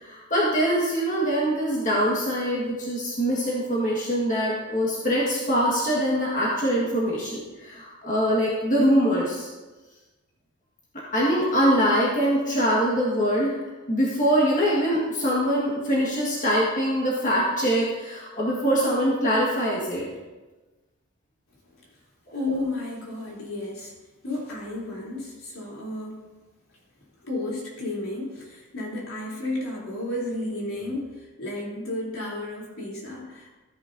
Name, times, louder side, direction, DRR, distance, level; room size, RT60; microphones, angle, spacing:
voice 1, 0.0-9.5 11.1-13.5 13.9-20.0, equal, 35° left, -5 dB, 1.7 m, -23 dB
voice 2, 22.3-23.9 24.2-26.2 27.2-33.5, left 2 dB, 75° left, -4 dB, 3.3 m, -32 dB
14.0 x 9.6 x 2.7 m, 1.2 s
head